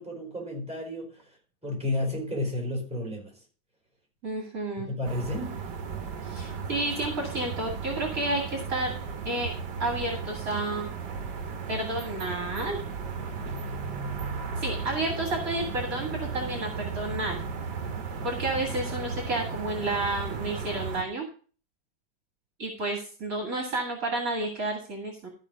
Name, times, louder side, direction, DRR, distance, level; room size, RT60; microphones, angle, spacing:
voice 1, 0.0-1.4 1.6-3.4 4.8-5.6, left 1 dB, 5° right, 4.6 m, -32 dB
voice 2, 4.2-4.9 6.2-8.9 9.3-9.5 9.8-10.9 11.7-12.8 14.6-17.4 18.2-21.3 22.6-25.3, right 2 dB, 45° right, 2.4 m, -31 dB
sound 1, 5.0-21.0, right 5 dB, 60° right, 1.8 m, -35 dB
13.5 x 5.4 x 5.2 m
omnidirectional pair, 2.1 m